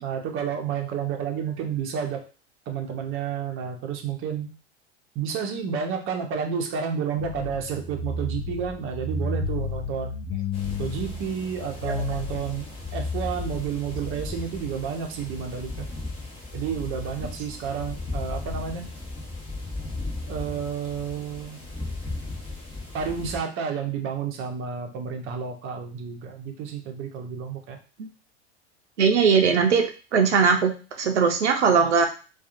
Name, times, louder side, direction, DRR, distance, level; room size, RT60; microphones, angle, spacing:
voice 1, 0.0-2.2 2.7-4.5 5.1-10.2 10.8-12.7 12.9-15.9 16.5-18.9 20.3-21.6 22.9-27.8, right 7 dB, 40° right, 3 dB, 0.7 m, -30 dB
sound 1, 7.2-14.1, left 4 dB, 45° left, 0.7 m, -32 dB
sound 2, 10.5-23.4, left 2 dB, 15° left, 0.9 m, -36 dB
voice 2, 29.0-29.8 30.1-30.7 31.0-32.1, right 6 dB, 85° right, 3 dB, 0.6 m, -19 dB
2.6 x 2.4 x 2.5 m, 0.35 s
hypercardioid pair, 80°, 34 cm